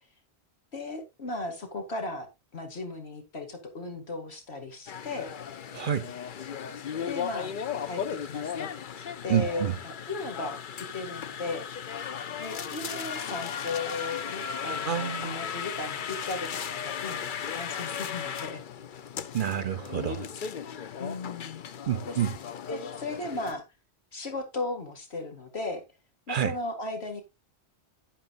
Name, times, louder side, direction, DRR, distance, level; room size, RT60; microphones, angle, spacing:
voice 1, 0.7-2.3 2.5-5.3 7.1-7.5 7.9-8.8 9.2-10.6 10.9-11.9 12.4-18.6 21.0-23.6 24.1-25.8 26.3-27.2, left 2 dB, 70° left, 2.4 m, -36 dB
sound 1, 4.9-23.5, left 7 dB, 55° left, 0.8 m, -36 dB
voice 2, 5.7-6.1 9.3-9.8 14.9-15.4 19.3-20.3 21.9-22.3 26.3-26.5, right 9 dB, 55° right, 0.7 m, -28 dB
10.5 x 10.5 x 2.5 m
omnidirectional pair, 1.1 m